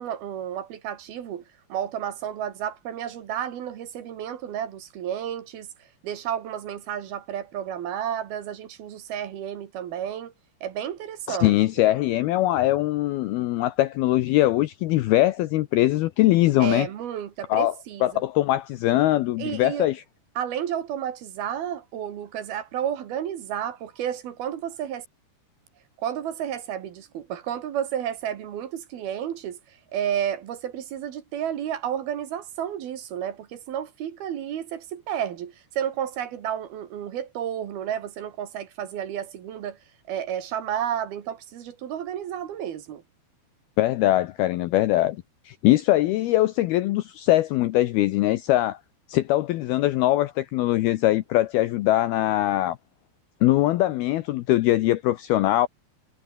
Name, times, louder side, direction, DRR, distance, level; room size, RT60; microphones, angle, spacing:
voice 1, 0.0-1.4 1.7-5.7 6.0-10.3 10.6-11.5 16.6-18.2 19.4-19.9 20.4-25.1 26.0-39.8 40.1-43.0, right 9 dB, 60° right, 3.4 m, -31 dB
voice 2, 11.3-16.9 17.5-17.7 18.0-20.0 43.8-45.2 45.5-48.8 49.1-52.8 53.4-55.7, left 15 dB, 80° left, 2.3 m, -22 dB
omnidirectional pair, 5.3 m